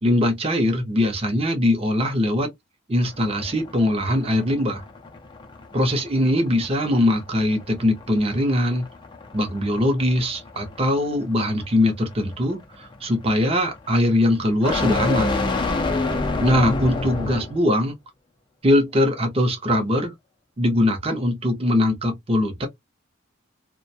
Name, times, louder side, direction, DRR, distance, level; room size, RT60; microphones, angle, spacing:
voice 1, 0.0-2.5 2.9-4.8 5.7-8.9 9.3-15.4 16.4-18.0 18.6-20.1 20.6-22.7, left 1 dB, 30° right, 0.7 m, -21 dB
sound 1, 3.1-17.6, left 3 dB, 25° left, 0.5 m, -30 dB
2.4 x 2.2 x 2.6 m
head